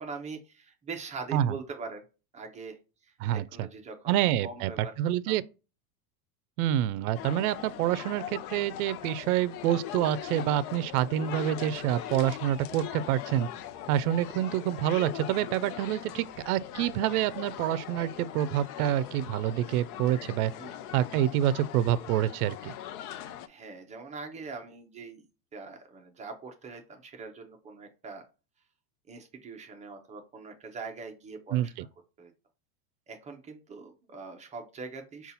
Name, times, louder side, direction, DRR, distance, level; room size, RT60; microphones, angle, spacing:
voice 1, 0.0-2.0 2.3-4.9 5.3-5.4 20.6-20.8 23.5-25.2 25.5-28.3 29.1-31.9 32.2-32.3 33.1-35.3, right 4 dB, 15° right, 0.5 m, -42 dB
voice 2, 3.2-3.7 4.1-4.7 5.0-5.4 6.6-13.5 13.9-20.5 20.9-22.7 31.5-31.8, right 12 dB, 70° right, 0.5 m, -27 dB
sound 1, 7.1-23.5, left 11 dB, 75° left, 0.7 m, -41 dB
5.4 x 2.4 x 4.0 m
supercardioid pair, 150°, 45 cm